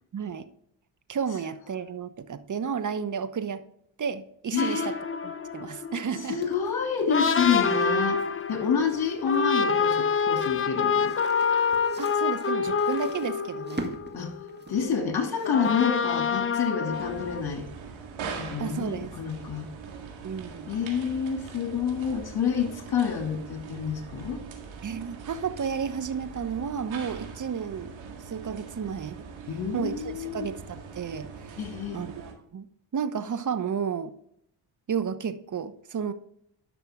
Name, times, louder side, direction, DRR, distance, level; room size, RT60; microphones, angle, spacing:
voice 1, 0.1-0.5 1.1-3.7 4.0-4.9 5.2-6.4 12.0-13.9 18.6-19.1 20.2-20.7 24.8-27.9 28.3-29.2 29.7-31.6 31.9-32.7 32.9-34.1 34.9-36.1, right 7 dB, 40° right, 12 dB, 1.0 m, -32 dB
voice 2, 4.5-4.9 6.3-8.2 8.5-11.1 14.1-14.3 14.7-17.7 18.4-19.7 20.7-24.4 29.5-30.5 31.6-32.0, left 6 dB, 50° left, 4 dB, 2.6 m, -28 dB
sound 1, 4.6-14.9 15.4-17.4, left 5 dB, 25° left, 0.7 m, -27 dB
sound 2, 6.2-17.0, right 1 dB, 20° right, 1.7 m, -45 dB
sound 3, 16.9-32.3, right 5 dB, 75° right, 2.0 m, -42 dB
11.0 x 5.9 x 3.6 m, 0.71 s
supercardioid pair, 65°, 47 cm